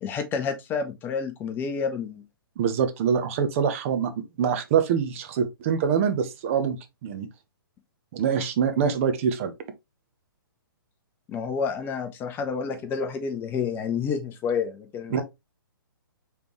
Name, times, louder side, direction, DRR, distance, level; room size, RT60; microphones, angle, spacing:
voice 1, 0.0-2.2 11.3-15.2, left 6 dB, 15° left, 0.5 m, -29 dB
voice 2, 2.6-6.8 7.0-7.3 8.1-9.5 15.1-15.2, right 7 dB, 35° right, 0.8 m, -24 dB
5.1 x 3.3 x 3.0 m
figure-of-eight pair, 125°, 12 cm